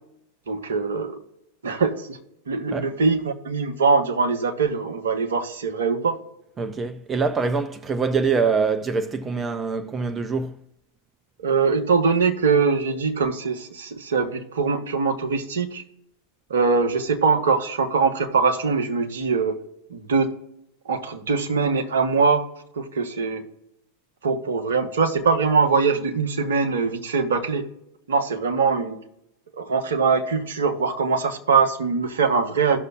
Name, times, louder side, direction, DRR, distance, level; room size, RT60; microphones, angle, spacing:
voice 1, 0.5-1.2 1.6-2.2 2.5-6.2 11.4-15.8 16.5-19.6 19.9-20.3 20.8-22.5 22.7-23.5 24.2-27.7 28.1-29.0 29.5-32.8, right 5 dB, 65° right, 1.1 m, -22 dB
voice 2, 6.6-10.6, right 4 dB, 20° right, 0.5 m, -24 dB
17.0 x 6.5 x 2.5 m
figure-of-eight pair, 90°, 0 cm